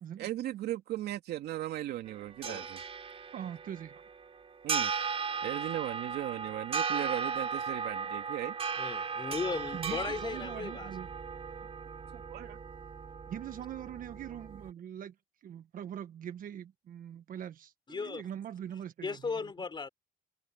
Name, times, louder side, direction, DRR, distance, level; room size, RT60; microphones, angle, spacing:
voice 1, 0.2-2.8 4.6-4.9 5.4-8.6 12.1-12.6, right 13 dB, 75° right, 2.9 m, -37 dB
sound 1, 2.1-14.7, right 5 dB, 35° right, 3.1 m, -37 dB
voice 2, 3.3-4.0 9.7-11.1 13.3-15.1 15.4-19.5, right 9 dB, 55° right, 1.3 m, -42 dB
voice 3, 8.8-10.9 17.9-18.2 19.0-19.9, left 4 dB, 25° left, 4.3 m, -36 dB
cardioid pair, 110°, 17 cm